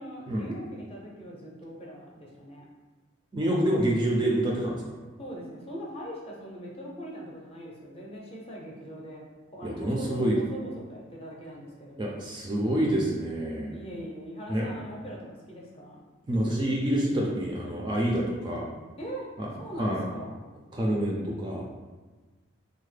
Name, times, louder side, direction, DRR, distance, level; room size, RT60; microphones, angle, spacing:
voice 1, 0.0-2.6 5.2-9.2 9.5-12.2 13.7-16.0 19.0-19.3 19.6-20.4, equal, 30° left, -3 dB, 0.6 m, -41 dB
voice 2, 3.3-4.8 9.6-10.4 12.0-13.7 14.5-14.7 16.3-18.7 19.4-19.5 19.8-20.0 20.7-21.6, right 1 dB, 20° right, -2 dB, 0.3 m, -27 dB
3.2 x 2.0 x 3.2 m, 1.3 s
head